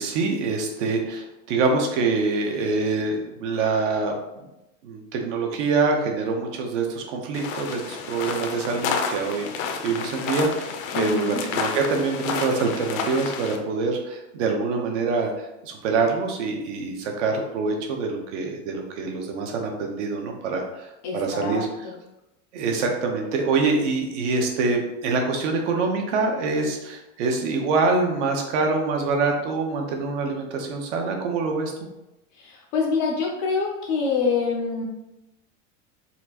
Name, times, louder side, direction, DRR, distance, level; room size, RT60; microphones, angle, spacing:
voice 1, 0.0-4.1 4.4-4.5 4.8-21.9 22.5-31.7, right 4 dB, 65° right, 2 dB, 0.8 m, -25 dB
sound 1, 7.3-13.6, left 5 dB, 80° left, 0.7 m, -30 dB
voice 2, 10.9-11.4 21.0-21.9 32.4-34.8, left 4 dB, 30° left, -1 dB, 0.4 m, -26 dB
4.2 x 2.5 x 2.8 m, 0.94 s
supercardioid pair, 165°, 39 cm